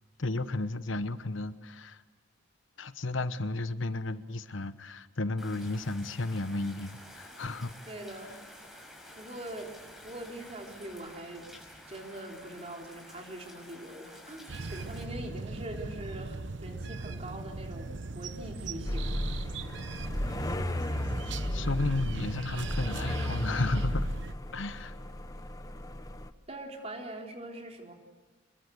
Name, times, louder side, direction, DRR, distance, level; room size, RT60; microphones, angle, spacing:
voice 1, 0.2-2.0 2.8-7.7 8.2-8.4 21.5-24.1 24.5-24.9, left 2 dB, 85° left, 12 dB, 1.1 m, -33 dB
Rain, 5.4-15.0, left 1 dB, ahead, 5.5 m, -51 dB
voice 2, 7.9-8.4 9.2-9.7 10.0-11.5 11.9-19.3 26.5-27.9, right 1 dB, 35° right, 1 dB, 3.9 m, -43 dB
sound 1, 14.5-24.3, right 3 dB, 70° right, 0.9 m, -39 dB
sound 2, 18.8-26.3, left 1 dB, 20° left, 0.9 m, -34 dB
26.0 x 22.0 x 8.1 m, 1.3 s
head